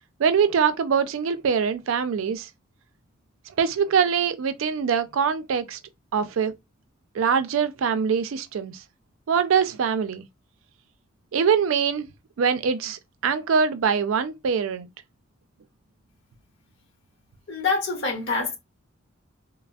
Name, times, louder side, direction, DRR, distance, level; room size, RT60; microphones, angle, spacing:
voice 1, 0.2-2.5 3.6-5.8 6.1-6.5 7.1-8.7 9.3-10.2 11.3-12.1 12.4-14.9, right 6 dB, 85° right, 0.4 m, -23 dB
voice 2, 17.5-18.6, left 4 dB, 65° left, 0.8 m, -25 dB
3.3 x 2.0 x 2.2 m
head